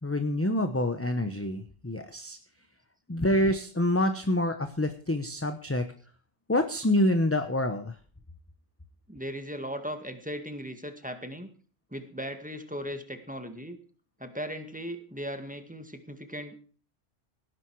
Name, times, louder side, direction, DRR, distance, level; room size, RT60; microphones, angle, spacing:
voice 1, 0.0-2.4 3.1-5.9 6.5-8.0, left 1 dB, 15° left, 7 dB, 1.0 m, -27 dB
voice 2, 9.1-11.5 11.9-13.8 14.2-16.5, equal, 5° right, 7 dB, 1.8 m, -37 dB
18.0 x 11.0 x 4.8 m, 0.41 s
omnidirectional pair, 1.1 m